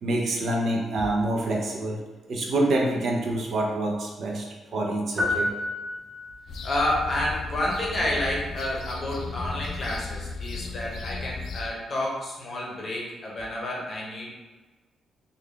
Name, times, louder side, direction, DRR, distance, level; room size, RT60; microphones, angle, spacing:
voice 1, 0.0-2.0 2.3-4.5 4.7-5.6, right 1 dB, 50° right, 0 dB, 0.5 m, -26 dB
sound 1, 5.2-6.6, left 2 dB, 10° right, 0.8 m, -29 dB
sound 2, 6.5-11.7, left 3 dB, 65° left, 0.4 m, -35 dB
voice 2, 6.6-14.3, left 1 dB, 30° left, -3 dB, 0.7 m, -29 dB
3.3 x 2.2 x 3.7 m, 1.2 s
wide cardioid pair, 175°, 0 cm